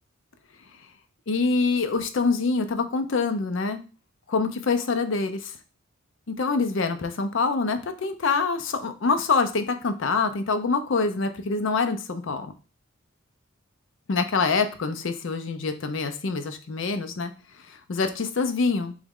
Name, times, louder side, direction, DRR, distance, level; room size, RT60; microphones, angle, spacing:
voice 1, 1.3-3.8 4.3-5.5 6.3-12.5 14.1-17.3 17.7-18.9, left 4 dB, 60° left, 8 dB, 0.5 m, -25 dB
3.5 x 3.1 x 3.6 m, 0.34 s
head